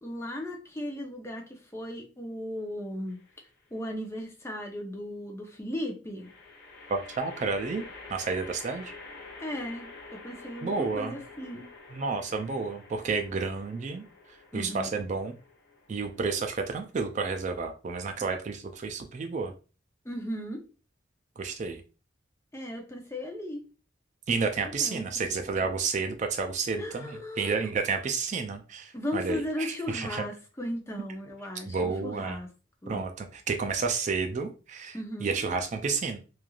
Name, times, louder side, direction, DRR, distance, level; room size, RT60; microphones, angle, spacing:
voice 1, 0.0-3.2 3.7-6.3 9.4-11.7 14.5-14.9 20.0-20.6 22.5-23.6 24.8-25.3 26.8-27.7 28.9-32.5 32.8-33.0 34.9-35.3, left 1 dB, 15° left, 0 dB, 0.6 m, -36 dB
sound 1, 3.1-3.7 6.2-17.5, left 3 dB, 60° left, 0.7 m, -48 dB
voice 2, 6.9-8.9 10.6-11.2 11.9-14.0 14.5-15.3 15.9-19.5 21.4-21.8 24.3-30.2 31.7-32.4 32.9-36.2, right 4 dB, 40° right, 6 dB, 0.4 m, -31 dB
3.1 x 2.4 x 2.3 m, 0.34 s
head